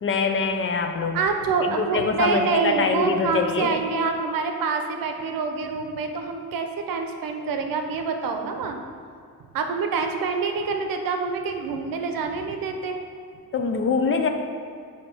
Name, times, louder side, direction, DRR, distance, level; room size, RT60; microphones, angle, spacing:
voice 1, 0.0-1.2 1.6-3.7 13.5-14.3, left 5 dB, 35° left, 5 dB, 0.5 m, -24 dB
voice 2, 1.1-8.8 9.5-13.0, right 4 dB, 80° right, 5 dB, 0.7 m, -26 dB
7.9 x 2.8 x 4.9 m, 2.3 s
cardioid pair, 115°, 34 cm